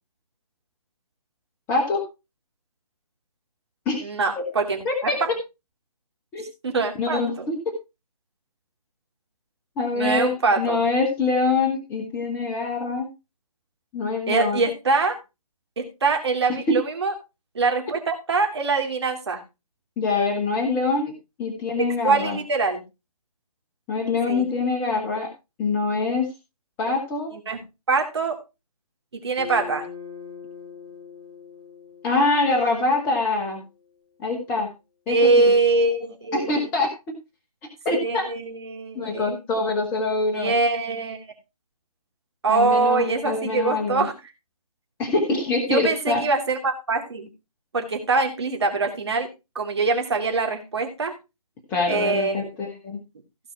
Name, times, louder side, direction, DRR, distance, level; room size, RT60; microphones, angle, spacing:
voice 1, 1.7-2.0 3.8-4.1 4.8-5.2 6.3-6.4 7.0-7.6 9.8-13.1 13.9-14.6 20.0-21.1 21.4-22.4 23.9-25.3 25.6-26.3 26.8-27.3 32.0-33.6 34.2-34.7 35.1-35.5 36.3-36.9 37.8-38.3 38.9-40.5 42.5-44.1 45.0-46.2 51.7-53.0, left 3 dB, 10° left, 2 dB, 1.1 m, -24 dB
voice 2, 4.0-5.3 6.6-7.5 9.9-10.8 14.3-15.2 15.8-17.1 17.5-19.4 21.8-22.8 24.3-24.5 27.3-27.6 27.9-28.4 29.1-29.9 35.1-36.7 37.9-39.4 40.3-41.2 42.4-44.1 45.7-47.3 47.7-49.3 49.5-51.1 51.9-52.4, right 3 dB, 45° right, 4 dB, 2.9 m, -23 dB
sound 1, 29.3-33.7, left 6 dB, 35° left, 3.5 m, -42 dB
16.0 x 5.4 x 4.5 m, 0.27 s
figure-of-eight pair, 150°, 20 cm